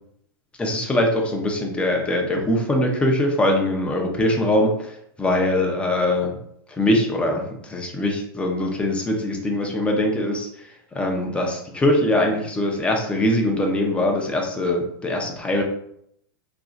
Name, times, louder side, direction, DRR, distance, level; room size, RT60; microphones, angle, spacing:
voice 1, 0.6-6.4 6.7-15.6, left 1 dB, 10° left, 1 dB, 0.5 m, -22 dB
2.5 x 2.3 x 3.9 m, 0.71 s
supercardioid pair, 145°, 13 cm